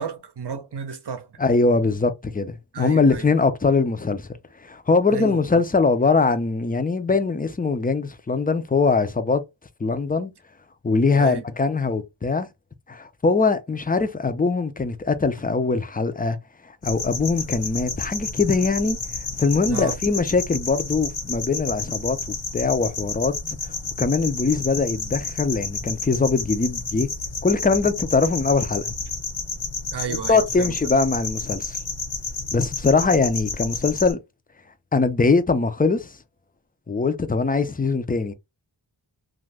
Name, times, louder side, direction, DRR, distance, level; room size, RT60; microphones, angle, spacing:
voice 1, 0.0-1.4 2.7-3.3 5.1-5.4 11.1-11.4 19.7-20.0 29.9-30.8, right 6 dB, 55° right, 0.7 m, -32 dB
voice 2, 1.4-4.3 4.6-9.4 9.8-10.3 10.8-12.5 12.9-16.4 16.8-19.0 19.4-22.2 22.5-23.3 24.0-27.1 27.4-28.9 30.3-31.8 32.5-34.2 34.9-36.1 36.9-38.3, left 4 dB, 20° left, 0.5 m, -22 dB
sound 1, 16.8-34.1, left 4 dB, 90° left, 1.1 m, -31 dB
2.6 x 2.5 x 3.3 m
wide cardioid pair, 45°, 48 cm